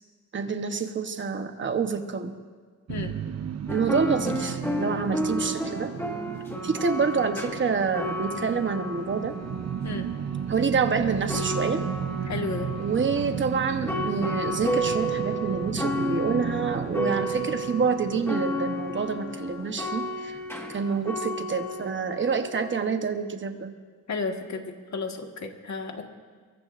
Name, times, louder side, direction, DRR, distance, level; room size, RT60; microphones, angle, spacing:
voice 1, 0.3-2.4 3.7-5.9 6.6-9.4 10.5-11.9 12.8-20.4 20.7-23.7, right 5 dB, 35° right, 7 dB, 1.0 m, -27 dB
sound 1, 2.9-20.1, right 8 dB, 55° right, 0.6 m, -35 dB
sound 2, 3.7-23.0, equal, 10° left, 1.6 m, -32 dB
voice 2, 12.3-12.7 24.1-26.0, left 4 dB, 60° left, 3 dB, 1.6 m, -32 dB
24.0 x 22.5 x 2.5 m, 1.5 s
wide cardioid pair, 155°, 32 cm